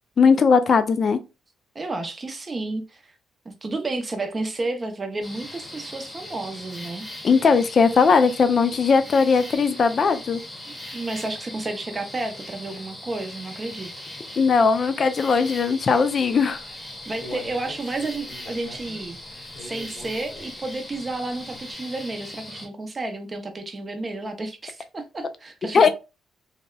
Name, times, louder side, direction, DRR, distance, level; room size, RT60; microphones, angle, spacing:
voice 1, 0.2-1.2 7.2-10.4 14.4-16.6 25.7-25.9, left 5 dB, 45° left, 0.4 m, -18 dB
voice 2, 1.7-3.0 3.5-7.1 9.3-9.4 10.7-13.9 17.1-19.2 19.6-25.9, right 2 dB, 30° right, 0.5 m, -31 dB
sound 1, 5.2-22.7, left 1 dB, 15° left, 0.8 m, -39 dB
Human voice, 16.7-20.8 21.1-21.2 21.7-21.8, left 1 dB, 80° left, 0.9 m, -43 dB
2.7 x 2.1 x 2.2 m
cardioid pair, 90°, 0 cm